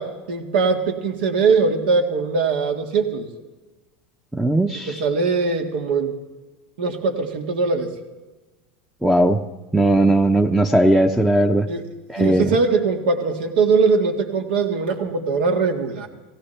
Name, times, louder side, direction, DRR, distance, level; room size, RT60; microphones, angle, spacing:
voice 1, 0.0-3.3 4.9-6.1 6.8-7.9 11.7-11.8 12.2-16.1, right 4 dB, 75° right, 4 dB, 1.9 m, -21 dB
voice 2, 4.3-5.0 9.0-9.4 9.7-11.7 12.1-12.5, right 1 dB, 5° right, 5 dB, 0.7 m, -18 dB
17.5 x 16.5 x 3.3 m, 1.2 s
hypercardioid pair, 105°, 5 cm